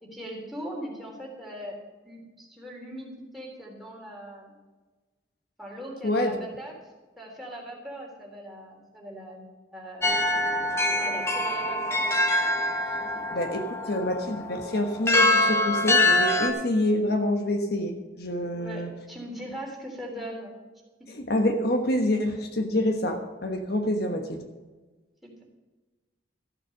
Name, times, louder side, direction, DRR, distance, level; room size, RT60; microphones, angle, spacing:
voice 1, 0.0-1.8 2.0-4.6 5.6-10.2 10.8-12.0 13.0-13.2 13.8-14.0 18.6-20.5 25.2-25.4, equal, ahead, -3 dB, 3.5 m, -40 dB
voice 2, 6.0-6.4 12.9-13.0 13.3-18.9 21.1-24.4, left 1 dB, 65° left, 4 dB, 1.3 m, -27 dB
sound 1, 10.0-16.5, left 1 dB, 15° left, 1.4 m, -24 dB
14.0 x 7.6 x 6.5 m, 1.2 s
head